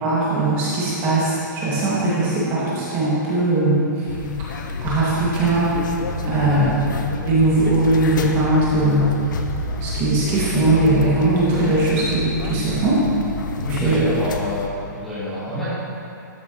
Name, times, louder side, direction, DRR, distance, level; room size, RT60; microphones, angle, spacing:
voice 1, 0.0-4.1 4.8-5.7 6.3-6.7 7.2-9.1 9.8-13.0 13.7-14.1, right 2 dB, 25° right, -8 dB, 2.3 m, -19 dB
sound 1, 4.1-14.7, left 5 dB, 75° left, 0.8 m, -29 dB
sound 2, 6.0-11.3, right 7 dB, 75° right, 0.6 m, -33 dB
voice 2, 6.5-6.8 12.6-12.8 13.5-15.7, equal, ahead, -13 dB, 2.0 m, -28 dB
13.0 x 7.3 x 3.2 m, 2.6 s
hypercardioid pair, 160°, 10 cm